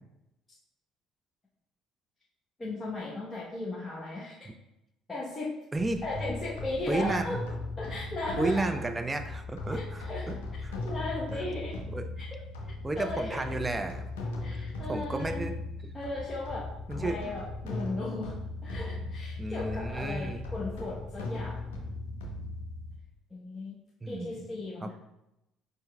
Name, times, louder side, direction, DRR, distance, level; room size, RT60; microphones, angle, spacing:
voice 1, 2.6-4.4 5.1-5.5 6.0-7.4 7.8-8.7 9.7-10.3 10.8-11.7 12.2-12.4 13.0-13.6 14.4-15.4 15.9-16.7 17.0-18.4 18.6-21.6 23.3-23.8 24.1-24.9, left 2 dB, 25° left, -6 dB, 0.9 m, -36 dB
sound 1, 5.7-23.0, left 2 dB, 75° left, 0.8 m, -38 dB
voice 2, 5.7-6.0 6.9-7.3 8.4-10.0 10.6-10.8 11.3-11.4 11.9-12.0 12.8-14.1 14.5-15.5 16.9-17.2 19.4-20.4 24.0-24.4 24.8-24.9, right 2 dB, 20° right, 7 dB, 0.5 m, -32 dB
5.0 x 4.5 x 2.2 m, 0.88 s
figure-of-eight pair, 55°, 0 cm